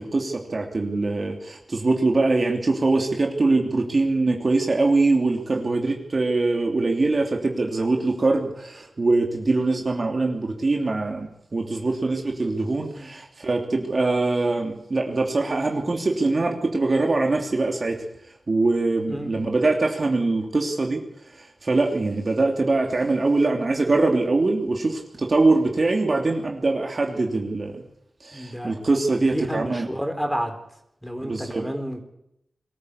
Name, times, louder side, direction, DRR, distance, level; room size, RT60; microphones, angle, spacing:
voice 1, 0.0-18.0 18.5-21.0 21.6-27.7 28.2-29.9 31.2-31.7, right 3 dB, 45° right, 2 dB, 3.0 m, -23 dB
voice 2, 28.3-28.8 29.2-30.5 31.0-32.0, equal, ahead, 5 dB, 4.1 m, -30 dB
23.5 x 14.0 x 8.3 m, 0.79 s
wide cardioid pair, 75°, 0 cm